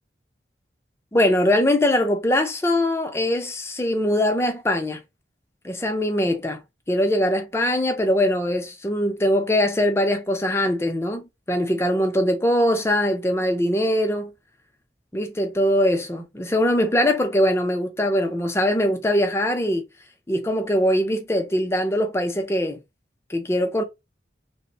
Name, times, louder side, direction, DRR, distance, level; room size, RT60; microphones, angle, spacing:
voice 1, 1.1-5.0 5.6-6.6 6.9-14.3 15.1-19.8 20.3-22.8 23.3-23.8, left 1 dB, 15° left, 0.4 m, -22 dB
2.9 x 2.0 x 2.6 m
head